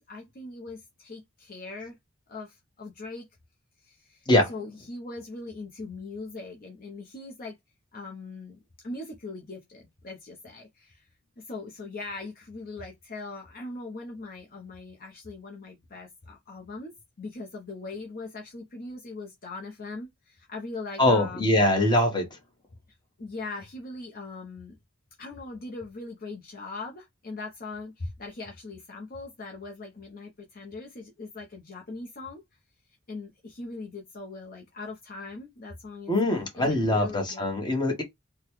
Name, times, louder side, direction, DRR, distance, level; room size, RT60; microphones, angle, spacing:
voice 1, 0.0-2.0 2.3-3.3 3.8-7.6 7.9-11.1 11.4-21.7 23.2-24.8 25.2-32.4 33.1-36.1 36.6-37.7, left 3 dB, 45° left, 0.8 m, -40 dB
voice 2, 21.0-22.3 36.1-38.0, left 1 dB, 20° left, 1.2 m, -23 dB
3.8 x 2.2 x 3.1 m
head